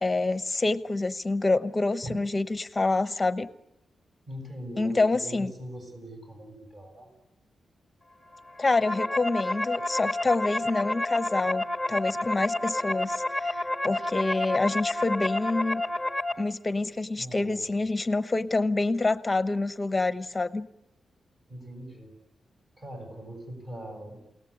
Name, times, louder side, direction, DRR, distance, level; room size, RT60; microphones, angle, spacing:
voice 1, 0.0-3.5 4.8-5.5 8.6-13.5 13.8-15.8 16.4-20.7, left 3 dB, 20° left, 13 dB, 1.0 m, -27 dB
voice 2, 4.3-7.1 13.9-14.1 17.2-17.6 21.5-22.1 22.8-24.2, right 1 dB, 30° right, 5 dB, 7.5 m, -41 dB
sound 1, 8.5-16.3, left 1 dB, 5° right, 1.7 m, -30 dB
29.0 x 18.0 x 8.5 m, 0.88 s
wide cardioid pair, 135°, 0 cm